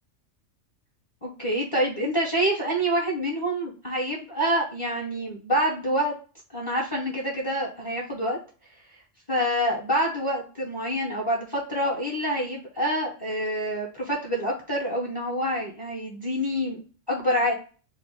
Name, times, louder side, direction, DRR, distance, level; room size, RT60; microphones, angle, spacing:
voice 1, 1.2-6.1 6.5-8.4 9.3-17.5, equal, 20° left, -3 dB, 0.9 m, -27 dB
4.7 x 2.0 x 4.4 m, 0.38 s
omnidirectional pair, 1.3 m